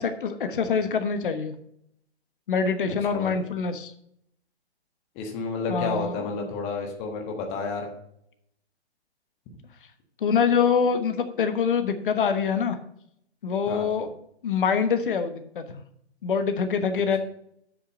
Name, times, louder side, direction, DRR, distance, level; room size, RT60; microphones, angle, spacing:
voice 1, 0.0-1.5 2.5-3.9 5.7-6.5 10.2-12.8 13.4-14.1 14.4-15.8 16.2-17.2, left 6 dB, 50° left, 8 dB, 1.3 m, -25 dB
voice 2, 5.1-7.9 13.7-13.9, left 4 dB, 20° left, 2 dB, 1.3 m, -31 dB
7.9 x 6.7 x 5.3 m, 0.73 s
hypercardioid pair, 150°, 34 cm